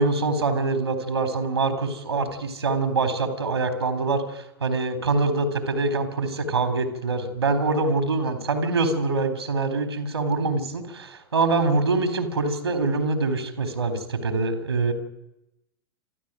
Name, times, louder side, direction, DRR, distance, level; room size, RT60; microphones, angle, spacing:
voice 1, 0.0-14.9, right 3 dB, 85° right, 9 dB, 3.9 m, -24 dB
27.0 x 13.5 x 9.1 m, 0.91 s
figure-of-eight pair, 95°, 13 cm